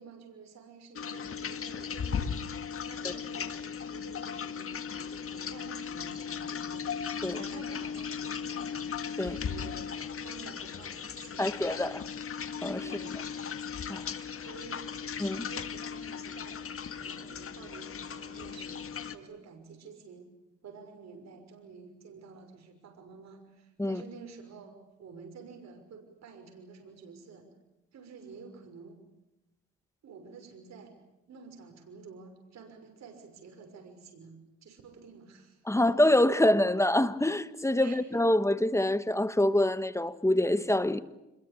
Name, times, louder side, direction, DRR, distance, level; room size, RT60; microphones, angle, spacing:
voice 1, 0.0-2.4 2.8-6.9 7.3-8.8 9.3-9.8 10.2-12.2 12.8-13.2 14.4-14.9 15.2-16.6 16.9-18.8 19.1-20.3 20.6-27.5 27.9-29.0 30.0-30.9 31.3-35.8 37.8-38.0, right 5 dB, 60° right, 6.2 m, -50 dB
sound 1, 1.0-19.2, left 7 dB, 45° left, 1.8 m, -37 dB
voice 2, 11.4-12.0 12.6-12.9 13.9-14.1 15.2-15.5 23.8-24.0 35.7-41.0, left 1 dB, 10° left, 1.3 m, -26 dB
26.5 x 22.0 x 8.6 m
cardioid pair, 90°, 30 cm